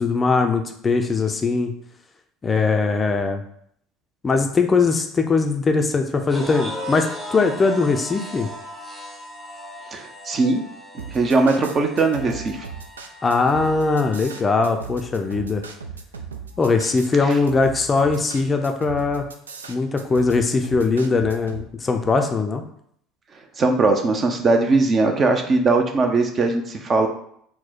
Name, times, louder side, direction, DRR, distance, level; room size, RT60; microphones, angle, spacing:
voice 1, 0.0-1.7 2.4-3.4 4.2-8.5 13.2-15.6 16.6-19.2 19.7-22.6, left 4 dB, 25° left, 5 dB, 0.4 m, -20 dB
sound 1, 6.3-14.7, equal, 10° right, 0.9 m, -37 dB
voice 2, 9.9-10.6 10.9-12.7 17.3-17.4 23.6-27.1, right 3 dB, 35° right, 4 dB, 0.6 m, -20 dB
sound 2, 11.0-21.6, right 6 dB, 80° right, 0.3 m, -37 dB
4.2 x 2.1 x 4.1 m, 0.68 s
figure-of-eight pair, 65°, 0 cm